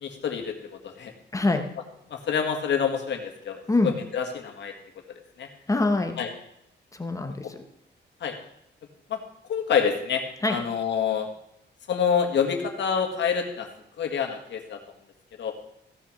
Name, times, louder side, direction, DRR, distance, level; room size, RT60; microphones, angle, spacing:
voice 1, 0.0-1.1 2.1-4.7 5.4-5.5 6.2-6.3 7.4-7.5 8.2-8.4 9.1-9.2 9.5-10.2 10.5-11.3 11.9-13.7 14.0-14.8 15.4-15.5, left 7 dB, 75° left, 4 dB, 1.9 m, -27 dB
voice 2, 1.3-1.7 3.7-3.9 5.7-6.2 6.9-7.6 10.4-10.6, left 2 dB, 15° left, 5 dB, 1.0 m, -24 dB
15.5 x 6.2 x 6.7 m, 0.78 s
wide cardioid pair, 160°, 19 cm